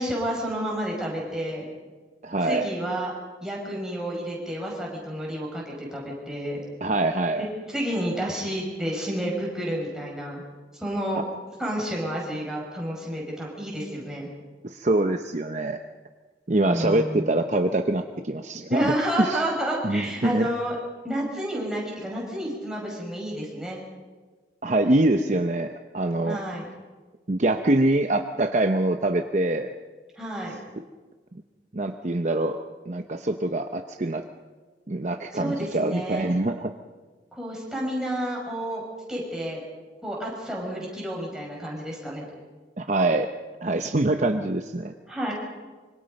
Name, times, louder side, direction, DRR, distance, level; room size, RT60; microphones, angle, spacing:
voice 1, 0.0-1.7 2.4-3.1 3.4-6.6 7.4-10.4 10.8-11.2 11.6-14.3 16.6-17.3 18.7-20.8 21.0-23.8 26.2-26.7 30.2-30.6 35.3-36.3 37.3-38.8 39.1-39.6 40.0-42.3 45.1-45.3, right 1 dB, 5° right, -3 dB, 6.0 m, -30 dB
voice 2, 2.2-2.7 6.8-7.4 14.6-15.8 16.5-19.4 19.8-20.5 24.6-26.4 27.3-29.8 31.7-32.6 32.9-34.2 34.9-36.7 42.8-43.3 43.6-44.9, right 2 dB, 40° right, 6 dB, 0.8 m, -24 dB
25.5 x 24.0 x 5.3 m, 1.3 s
head